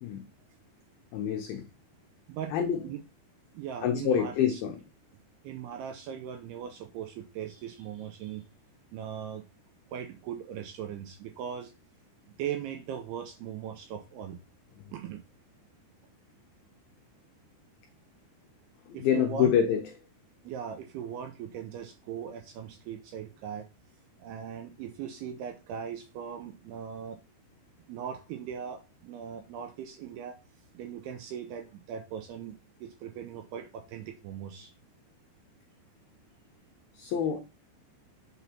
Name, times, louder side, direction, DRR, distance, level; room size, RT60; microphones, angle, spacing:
voice 1, 1.1-1.7 2.5-2.8 3.8-4.8 18.9-19.8 37.0-37.4, left 8 dB, 85° left, 2.1 m, -26 dB
voice 2, 3.5-4.6 5.4-8.4 8.9-9.4 9.9-11.7 12.4-14.4 14.9-15.2 18.9-19.5 20.4-23.7 24.2-27.2 27.9-30.4 30.7-34.7, right 8 dB, 85° right, 2.3 m, -39 dB
8.2 x 5.7 x 2.8 m
omnidirectional pair, 5.1 m